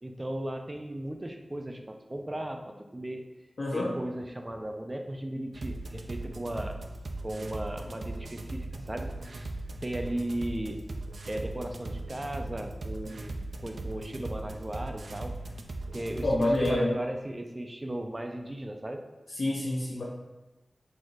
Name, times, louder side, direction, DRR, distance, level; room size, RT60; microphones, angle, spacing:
voice 1, 0.0-3.3 3.7-6.8 7.2-9.5 9.8-10.8 11.3-15.4 15.9-19.1, right 1 dB, 30° right, 5 dB, 0.5 m, -36 dB
voice 2, 3.6-3.9 16.2-16.9 19.4-20.0, left 1 dB, 85° left, -6 dB, 0.7 m, -27 dB
sound 1, 5.5-16.7, right 2 dB, 80° right, 0.4 m, -39 dB
4.6 x 4.1 x 2.6 m, 1.1 s
wide cardioid pair, 55°, 0 cm